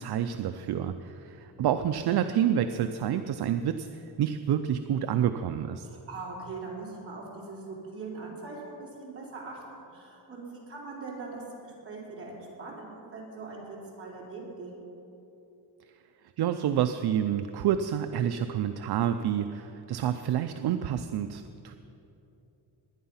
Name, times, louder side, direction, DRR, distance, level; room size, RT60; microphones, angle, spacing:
voice 1, 0.0-5.9 16.4-21.8, right 9 dB, 65° right, 9 dB, 0.6 m, -28 dB
voice 2, 5.8-14.8, right 3 dB, 30° right, -5 dB, 4.4 m, -41 dB
20.5 x 10.5 x 5.7 m, 2.9 s
wide cardioid pair, 155°, 42 cm